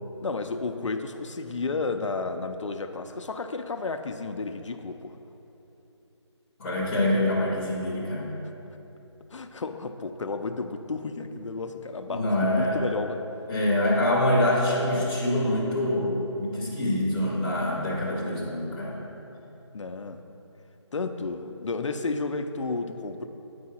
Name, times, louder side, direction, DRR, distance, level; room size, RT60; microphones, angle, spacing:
voice 1, 0.2-5.2 9.3-13.2 19.7-20.2 20.9-23.3, left 3 dB, 80° left, 7 dB, 0.5 m, -32 dB
voice 2, 6.6-8.4 12.1-12.8 13.5-19.0, left 1 dB, 5° left, -13 dB, 0.5 m, -25 dB
9.3 x 4.8 x 4.3 m, 3.0 s
figure-of-eight pair, 170°, 15 cm